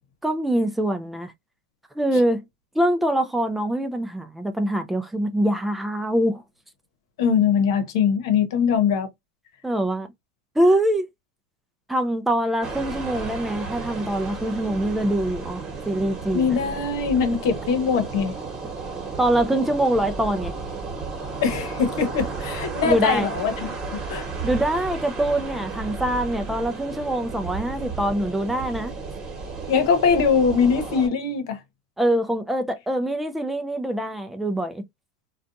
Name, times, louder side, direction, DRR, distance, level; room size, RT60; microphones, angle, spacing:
voice 1, 0.2-1.3 2.0-2.4 2.8-6.4 9.6-10.1 10.6-11.1 11.9-16.6 19.2-20.5 22.8-23.3 24.4-28.9 32.0-34.8, right 1 dB, 5° right, 0.4 m, -24 dB
voice 2, 7.2-9.1 16.3-18.3 21.4-24.2 29.7-31.6, left 6 dB, 80° left, 0.9 m, -22 dB
sound 1, 12.6-31.1, right 4 dB, 30° right, 1.2 m, -33 dB
2.5 x 2.3 x 2.5 m
supercardioid pair, 125°, 2 cm